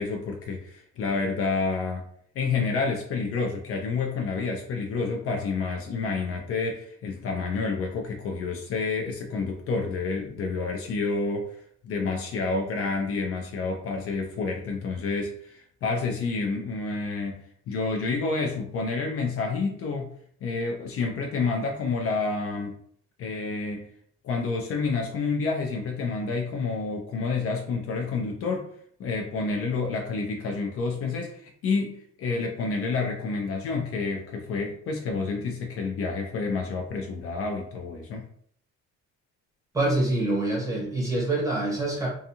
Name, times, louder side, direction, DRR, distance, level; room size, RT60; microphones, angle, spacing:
voice 1, 0.0-2.0 2.3-11.5 11.8-20.1 20.4-22.8 23.2-23.9 24.2-28.7 29.0-38.2, left 4 dB, 50° left, 2 dB, 0.4 m, -29 dB
voice 2, 39.7-42.1, right 2 dB, 10° right, -4 dB, 0.7 m, -25 dB
2.5 x 2.3 x 2.7 m, 0.62 s
cardioid pair, 165°, 31 cm